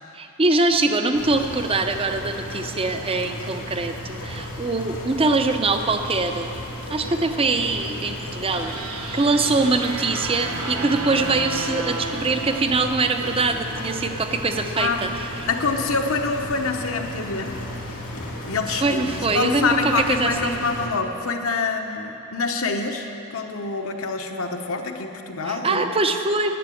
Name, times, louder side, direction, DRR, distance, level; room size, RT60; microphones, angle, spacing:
voice 1, 0.1-6.6 6.9-15.3 18.7-20.5 25.4-26.6, right 3 dB, 25° right, 6 dB, 0.6 m, -23 dB
sound 1, 1.1-20.9, left 1 dB, 80° left, 2.6 m, -34 dB
sound 2, 8.5-13.8, right 2 dB, 80° right, 1.2 m, -33 dB
voice 2, 15.5-17.6 18.5-25.9, left 4 dB, 65° left, 4 dB, 1.0 m, -26 dB
11.5 x 8.0 x 9.2 m, 2.9 s
head